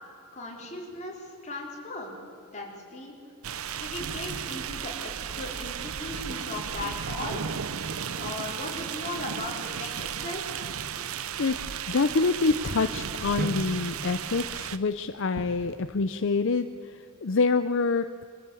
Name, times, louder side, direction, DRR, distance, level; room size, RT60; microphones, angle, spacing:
voice 1, 0.3-2.1 2.5-3.1 3.8-7.4 8.1-10.4, left 2 dB, 35° left, -1 dB, 4.4 m, -37 dB
sound 1, 3.4-14.8, right 7 dB, 75° right, 0.8 m, -34 dB
sound 2, 4.2-15.8, right 1 dB, 45° right, 1.6 m, -43 dB
voice 2, 11.9-18.3, left 4 dB, 60° left, 11 dB, 0.6 m, -26 dB
23.0 x 15.0 x 8.4 m, 2.6 s
head